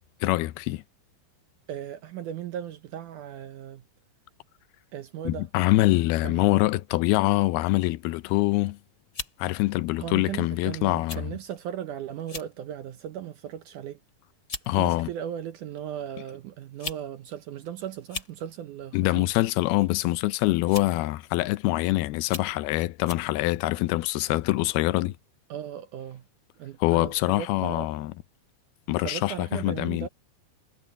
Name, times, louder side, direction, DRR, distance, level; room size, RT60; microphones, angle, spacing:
voice 1, 0.2-0.8 5.3-8.8 9.4-11.4 14.7-15.1 18.9-25.2 26.8-28.1 28.9-30.1, left 18 dB, 85° left, 2.6 m, -24 dB
voice 2, 1.7-3.8 4.9-5.5 6.2-6.5 10.0-14.0 14.7-19.3 25.5-26.2 26.6-27.9 29.0-30.1, right 10 dB, 75° right, 2.0 m, -37 dB
sound 1, 8.5-8.7 9.1-9.4 10.2-10.4 11.1-11.2 11.5-11.7 12.2-12.5 13.0-13.3 14.1-14.2 14.5-14.7 15.8-15.9 16.6-17.0 17.3-17.4 18.0-18.3 19.6-19.9 20.7-21.0 21.6-21.7 22.2-22.5 23.0-23.3, left 3 dB, 25° left, 4.7 m, -37 dB
omnidirectional pair, 4.4 m